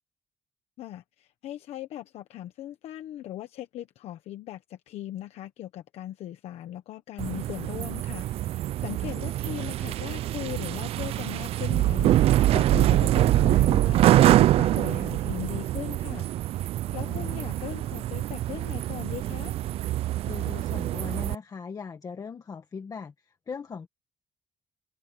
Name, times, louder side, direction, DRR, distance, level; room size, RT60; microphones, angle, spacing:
voice 1, 0.8-16.6 16.9-19.6, left 13 dB, 80° left, 1.2 m, -39 dB
sound 1, 7.2-21.3, right 14 dB, 70° right, 0.4 m, -24 dB
voice 2, 16.9-17.4 20.2-23.9, left 5 dB, 35° left, 1.7 m, -40 dB
cardioid pair, 130°, 11 cm